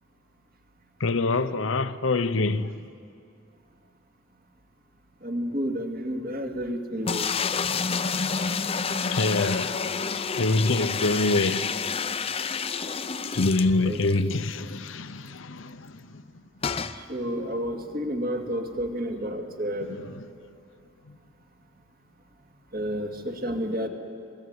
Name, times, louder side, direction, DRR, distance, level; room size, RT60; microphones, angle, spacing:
voice 1, 1.0-2.7 8.2-9.8 10.4-11.7 13.3-16.2 19.8-20.3, left 2 dB, 80° left, 0.9 m, -26 dB
voice 2, 5.2-7.3 13.8-14.0 17.1-20.0 22.7-23.9, equal, 50° right, 2.4 m, -30 dB
sound 1, 7.1-14.2 14.6-14.7 14.9-15.0 16.6-17.0, left 5 dB, 30° left, 0.7 m, -29 dB
27.5 x 19.0 x 9.6 m
head